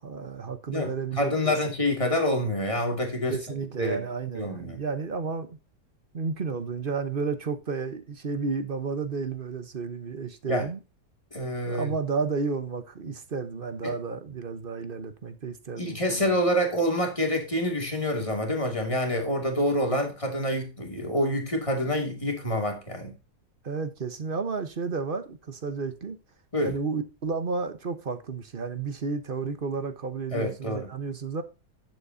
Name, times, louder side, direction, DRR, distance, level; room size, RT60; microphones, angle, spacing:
voice 1, 0.0-1.6 3.3-5.6 6.1-10.8 11.6-16.3 23.6-26.2 26.6-31.4, right 4 dB, 35° right, 1.1 m, -32 dB
voice 2, 0.7-3.4 3.8-4.0 4.3-4.8 10.5-10.7 11.3-11.9 13.8-14.0 15.8-23.1 26.5-26.8 30.3-30.9, left 1 dB, 20° left, 2.6 m, -27 dB
11.0 x 7.6 x 2.7 m
omnidirectional pair, 1.8 m